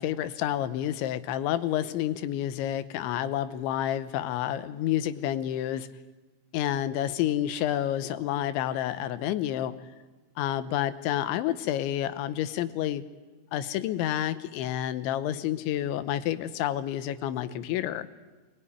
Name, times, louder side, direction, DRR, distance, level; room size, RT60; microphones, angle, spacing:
voice 1, 0.0-5.9 6.5-9.7 10.4-13.0 13.5-18.1, left 12 dB, 90° left, 12 dB, 3.3 m, -29 dB
23.5 x 21.0 x 9.9 m, 1.3 s
omnidirectional pair, 5.2 m